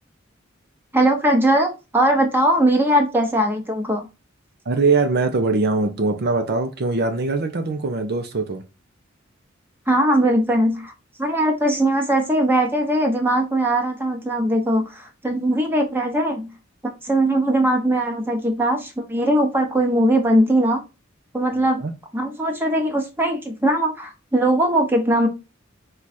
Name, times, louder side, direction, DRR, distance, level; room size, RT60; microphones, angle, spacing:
voice 1, 0.9-4.1 9.9-10.9 11.2-16.5 17.0-20.8 21.3-21.8 22.1-25.3, right 1 dB, 10° right, 0.9 m, -20 dB
voice 2, 4.7-8.6 21.8-21.9, right 3 dB, 55° right, 0.6 m, -22 dB
4.7 x 2.4 x 4.1 m
head